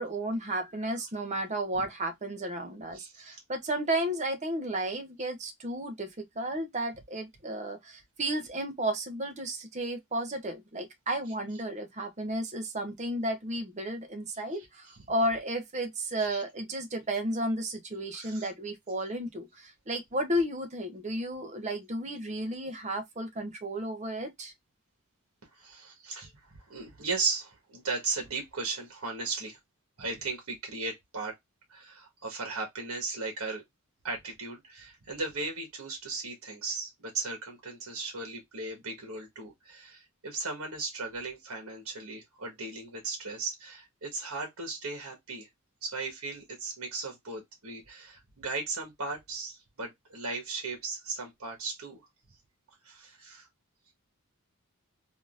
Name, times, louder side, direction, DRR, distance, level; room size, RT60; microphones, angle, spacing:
voice 1, 0.0-24.5, right 1 dB, 30° right, 0.8 m, -33 dB
voice 2, 2.9-3.4 14.5-15.0 16.2-16.4 18.1-18.5 25.5-29.6 30.0-31.3 31.7-33.6 34.0-45.5 45.8-52.0 52.8-53.5, right 3 dB, 70° right, 1.4 m, -37 dB
3.6 x 2.6 x 2.4 m
head